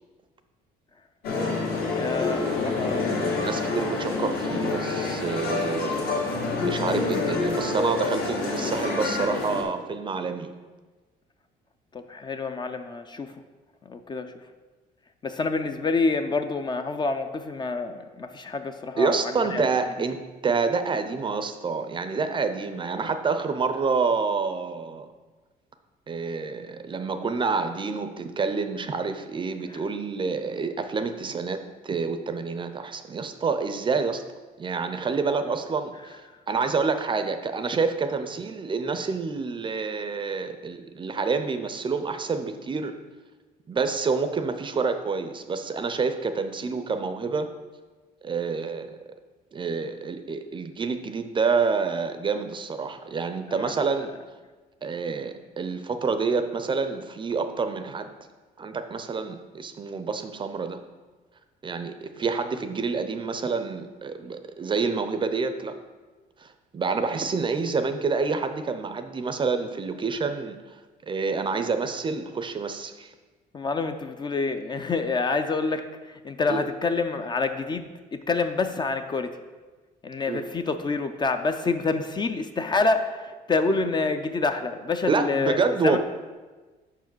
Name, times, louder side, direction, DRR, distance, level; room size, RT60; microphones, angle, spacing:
sound 1, 1.2-9.6, left 3 dB, 70° left, 1.9 m, -27 dB
voice 1, 1.9-3.4 11.9-13.3 13.8-14.3 15.2-19.7 29.7-29.8 53.6-53.7 73.5-79.4 80.0-86.0, left 3 dB, 25° left, 8 dB, 0.4 m, -27 dB
voice 2, 3.1-6.1 6.6-10.5 19.0-25.1 26.1-34.2 34.6-43.0 43.7-47.5 48.2-49.0 49.5-54.1 54.8-58.1 58.6-60.8 61.6-65.8 66.4-73.1 76.5-76.6 80.3-80.4 85.1-86.0, right 4 dB, 30° right, 9 dB, 0.5 m, -28 dB
5.5 x 4.7 x 6.1 m, 1.3 s
cardioid pair, 110°, 17 cm